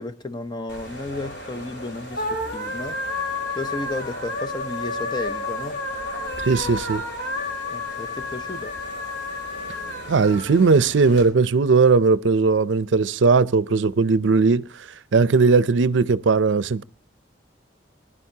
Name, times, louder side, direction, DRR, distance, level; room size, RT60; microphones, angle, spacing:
voice 1, 0.0-3.0 3.6-5.8 7.7-8.7, left 2 dB, 25° left, 0.6 m, -33 dB
sound 1, 0.7-11.2, left 2 dB, 60° left, 4.2 m, -31 dB
voice 2, 6.4-7.0 10.1-14.9 15.1-16.8, right 4 dB, 75° right, 0.5 m, -18 dB
20.5 x 11.5 x 2.8 m
head